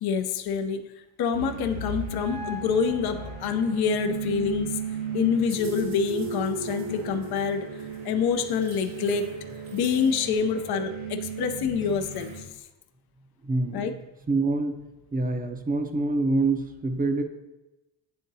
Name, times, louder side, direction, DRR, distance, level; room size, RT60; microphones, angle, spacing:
voice 1, 0.0-0.9 1.2-4.8 5.1-9.4 9.7-12.4 13.7-13.9, left 6 dB, 55° left, 6 dB, 0.7 m, -27 dB
sound 1, 1.3-12.4, right 5 dB, 80° right, 1.9 m, -35 dB
voice 2, 13.4-13.9 14.3-17.2, right 3 dB, 20° right, 6 dB, 0.6 m, -26 dB
9.5 x 3.7 x 2.7 m, 0.97 s
cardioid pair, 90°, 46 cm